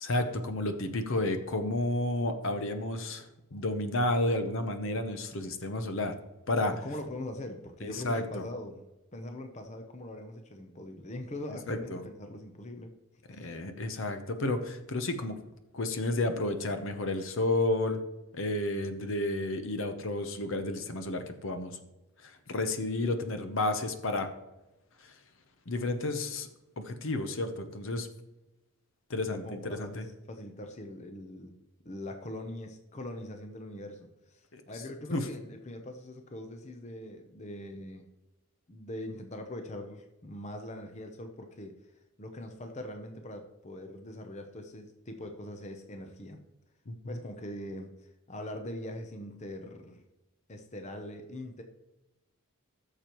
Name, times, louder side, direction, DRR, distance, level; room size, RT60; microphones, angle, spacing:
voice 1, 0.0-6.1 6.5-6.7 7.8-8.4 11.7-12.0 13.3-15.4 15.7-18.0 18.3-21.8 22.2-24.3 25.0-25.1 25.7-26.5 26.8-28.1 29.1-30.0 34.5-34.6 35.1-35.3 46.9-47.2, left 2 dB, 60° left, 8 dB, 0.8 m, -31 dB
voice 2, 6.7-8.8 9.1-12.9 13.3-13.6 29.3-31.6 31.8-38.1 38.7-41.9 42.2-46.4 47.1-50.0 50.5-51.6, left 1 dB, 30° left, 5 dB, 0.7 m, -42 dB
13.5 x 6.8 x 3.0 m, 0.99 s
head